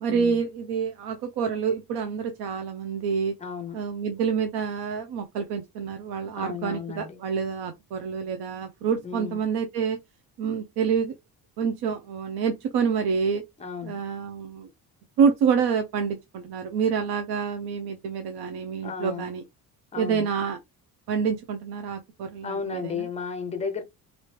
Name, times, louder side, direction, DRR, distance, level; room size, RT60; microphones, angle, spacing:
voice 1, 0.0-3.3 3.7-10.0 10.4-11.2 11.6-13.4 13.8-14.7 15.2-19.4 20.0-20.6 21.1-23.1, right 6 dB, 80° right, 0.7 m, -27 dB
voice 2, 3.4-3.8 6.3-7.2 9.0-9.4 13.6-14.0 18.8-19.3 19.9-20.3 22.4-23.8, left 6 dB, 20° left, 0.5 m, -34 dB
3.0 x 2.7 x 3.2 m
cardioid pair, 175°, 38 cm